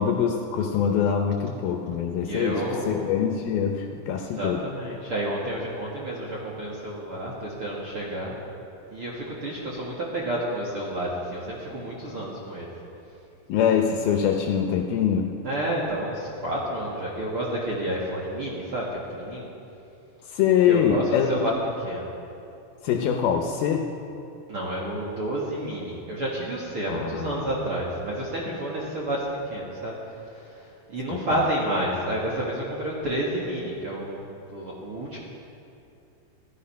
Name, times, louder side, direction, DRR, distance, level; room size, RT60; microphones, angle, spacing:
voice 1, 0.0-4.6 13.5-15.3 20.3-21.5 22.8-23.9 26.9-27.5 31.1-31.4, left 8 dB, 75° left, 3 dB, 2.4 m, -24 dB
voice 2, 2.2-3.5 4.2-8.3 8.9-12.7 15.4-19.5 20.7-21.5 21.8-22.1 24.5-34.2 34.5-35.2, right 1 dB, 50° right, -5 dB, 1.8 m, -30 dB
15.5 x 12.5 x 5.6 m, 2.7 s
omnidirectional pair, 5.0 m